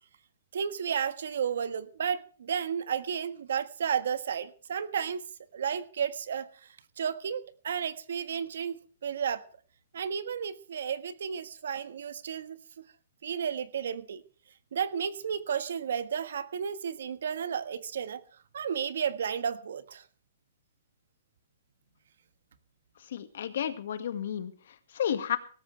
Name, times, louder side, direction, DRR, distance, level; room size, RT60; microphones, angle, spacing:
voice 1, 0.5-5.2 5.5-6.5 7.0-8.7 9.0-9.4 9.9-12.6 13.2-14.2 14.7-18.2 18.5-20.0, right 7 dB, 70° right, 12 dB, 1.5 m, -32 dB
voice 2, 23.0-25.4, left 9 dB, 55° left, 10 dB, 1.9 m, -32 dB
18.0 x 14.0 x 3.4 m, 0.41 s
hypercardioid pair, 170°, 0 cm